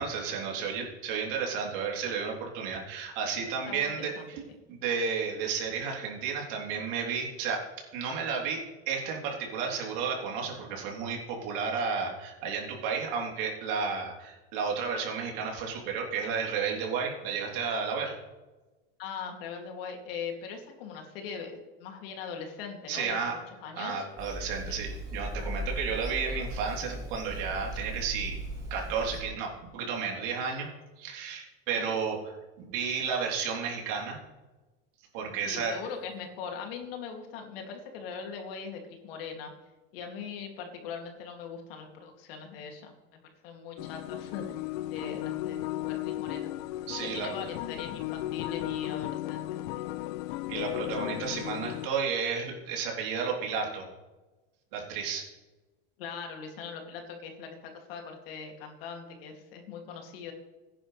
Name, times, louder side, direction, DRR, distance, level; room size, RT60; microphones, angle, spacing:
voice 1, 0.0-4.4 4.7-18.2 22.9-23.4 23.7-28.4 28.7-30.7 31.0-32.3 32.6-34.2 35.1-35.8 46.9-47.3 50.5-53.9 54.7-55.3, right 6 dB, 60° right, -1 dB, 3.5 m, -32 dB
voice 2, 3.6-4.3 19.0-24.0 31.8-31.9 35.2-39.5 39.9-44.6 44.9-46.5 47.1-49.9 56.0-60.3, left 6 dB, 70° left, 3 dB, 2.6 m, -41 dB
Bird vocalization bird call bird song / Telephone, 24.2-29.2, right 1 dB, 15° right, 3.0 m, -37 dB
sound 1, 43.8-51.9, left 16 dB, 55° left, 0.5 m, -35 dB
16.5 x 10.0 x 3.3 m, 1.2 s
supercardioid pair, 145°, 30 cm